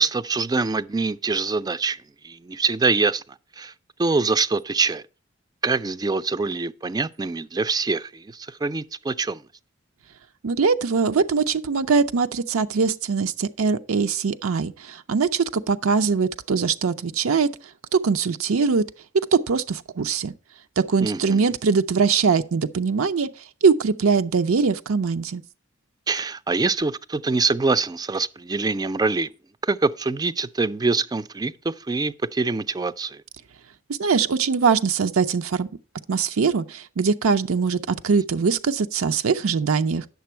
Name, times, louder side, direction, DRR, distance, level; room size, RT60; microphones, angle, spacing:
voice 1, 0.0-2.0 2.2-3.2 3.6-3.7 4.0-5.0 5.6-9.4 21.0-21.5 26.1-29.3 29.6-33.2, right 3 dB, 20° right, 0.3 m, -24 dB
voice 2, 10.4-17.5 17.9-18.8 19.3-20.3 20.8-23.3 23.6-25.4 34.0-35.7 36.1-40.1, right 5 dB, 85° right, 0.5 m, -22 dB
9.4 x 6.8 x 4.4 m
head